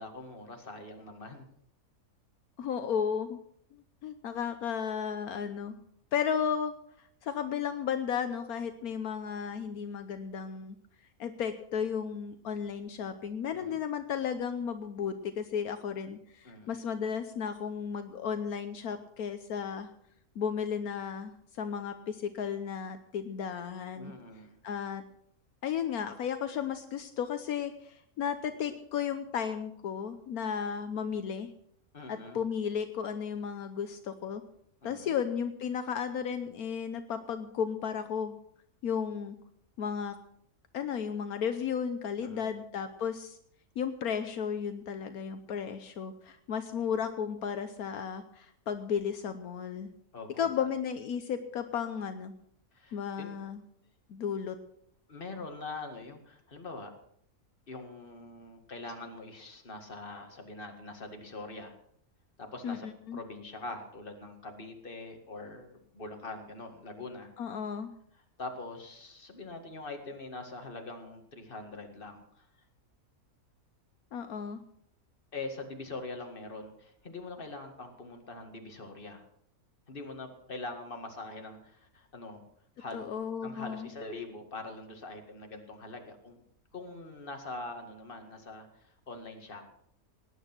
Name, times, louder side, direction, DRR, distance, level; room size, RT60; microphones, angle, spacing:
voice 1, 0.0-1.5 13.5-13.8 16.4-16.7 24.0-24.6 31.9-32.4 34.8-35.2 42.2-42.5 50.1-50.7 52.7-53.4 55.1-56.9 57.7-61.7 62.4-67.3 68.4-72.5 75.3-79.2 79.9-82.4 82.8-83.1 83.4-86.4 86.7-89.7, left 2 dB, 35° left, 4 dB, 2.1 m, -43 dB
voice 2, 2.6-3.4 4.0-5.8 6.1-6.7 7.2-10.8 11.2-19.9 20.4-24.1 24.6-25.0 25.6-31.5 32.1-34.4 34.8-38.4 38.8-39.4 39.8-40.1 40.7-43.4 43.8-49.9 50.4-52.3 52.9-53.6 54.1-54.5 62.6-63.2 67.4-67.9 74.1-74.6 82.9-83.9, left 7 dB, 75° left, 9 dB, 1.3 m, -34 dB
18.5 x 10.0 x 6.0 m, 0.69 s
omnidirectional pair, 1.6 m